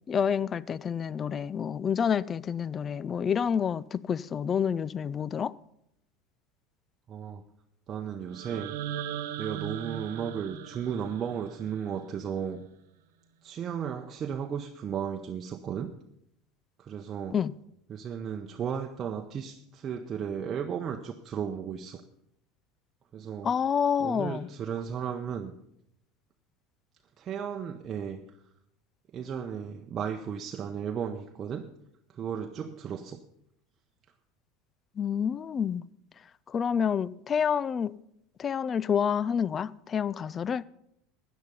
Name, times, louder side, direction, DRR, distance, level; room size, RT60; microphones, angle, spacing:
voice 1, 0.1-5.5 17.3-17.5 23.4-24.5 35.0-35.9 36.5-37.9 38.4-40.6, left 7 dB, 30° left, 0.4 m, -28 dB
voice 2, 7.1-7.4 7.9-8.8 9.4-12.6 13.4-15.9 16.8-17.4 17.9-22.0 23.1-23.5 24.0-25.5 27.2-28.2 29.1-31.7 32.1-33.2, right 7 dB, 35° right, 0.8 m, -35 dB
sound 1, 8.3-12.4, right 10 dB, 70° right, 0.8 m, -39 dB
13.5 x 9.5 x 5.4 m
hypercardioid pair, 75°, 0 cm